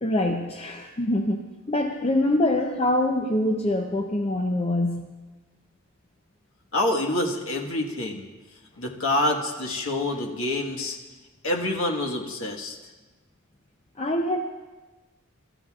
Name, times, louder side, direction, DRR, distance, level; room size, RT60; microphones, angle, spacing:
voice 1, 0.0-5.1 14.0-14.5, left 1 dB, 30° left, 3 dB, 0.6 m, -25 dB
voice 2, 6.7-8.3 8.8-11.0 11.4-12.8, left 1 dB, 85° left, 0 dB, 1.5 m, -27 dB
24.5 x 13.0 x 2.4 m, 1.2 s
head